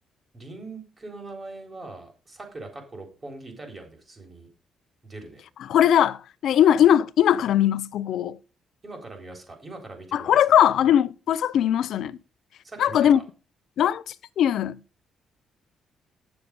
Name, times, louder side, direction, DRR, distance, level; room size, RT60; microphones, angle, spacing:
voice 1, 0.3-4.5 5.0-5.4 8.8-10.6 12.6-13.2, right 2 dB, 30° right, 3.9 m, -41 dB
voice 2, 5.7-8.4 10.1-12.2 12.8-13.2 13.8-14.8, left 10 dB, 75° left, 0.5 m, -20 dB
9.1 x 6.9 x 5.3 m
cardioid pair, 90°, 0 cm